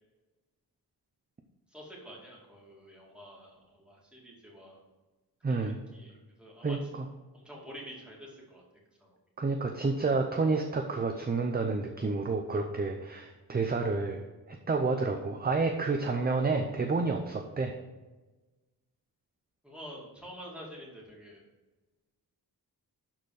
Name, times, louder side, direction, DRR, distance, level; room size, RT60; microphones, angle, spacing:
voice 1, 1.7-4.8 5.5-7.0 7.3-8.6 9.0-9.1 19.6-21.4, equal, 5° right, -4 dB, 2.4 m, -48 dB
voice 2, 5.4-5.8 6.6-7.0 9.4-14.2 14.7-17.7, right 3 dB, 25° right, 4 dB, 0.6 m, -29 dB
12.0 x 4.4 x 4.8 m, 1.2 s
wide cardioid pair, 180°, 39 cm